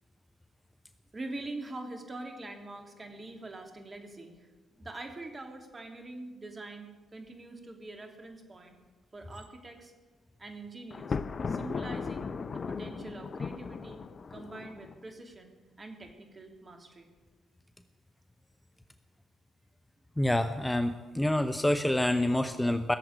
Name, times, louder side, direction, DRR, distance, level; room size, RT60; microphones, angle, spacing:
voice 1, 1.1-4.5 4.8-8.8 9.1-9.9 10.4-11.2 11.5-14.0 14.3-17.1, right 2 dB, 35° right, 4 dB, 3.0 m, -44 dB
Thunder, 10.9-15.0, left 5 dB, 45° left, 0.6 m, -37 dB
voice 2, 20.2-23.0, left 1 dB, 10° left, 9 dB, 0.9 m, -27 dB
17.0 x 7.7 x 9.9 m, 1.3 s
hypercardioid pair, 50°, 0 cm